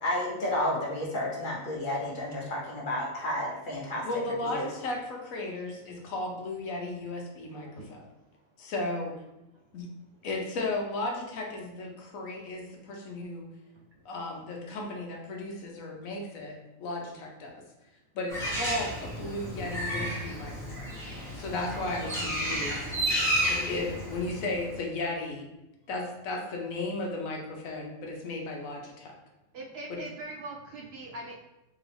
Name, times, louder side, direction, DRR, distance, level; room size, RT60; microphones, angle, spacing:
voice 1, 0.0-4.0 4.4-4.7, left 1 dB, 45° left, -3 dB, 1.0 m, -31 dB
voice 2, 4.0-8.0 8.6-9.1 9.7-9.9 10.2-13.5 14.0-16.5 16.8-17.5 18.1-20.5 21.3-22.8 23.4-25.4 25.9-29.1 29.9-30.0, left 2 dB, 85° left, 0 dB, 1.2 m, -35 dB
Bird, 18.3-24.8, equal, ahead, 0.9 m, -32 dB
voice 3, 29.5-31.4, right 2 dB, 65° right, -1 dB, 0.7 m, -41 dB
3.7 x 3.0 x 3.3 m, 0.95 s
omnidirectional pair, 1.4 m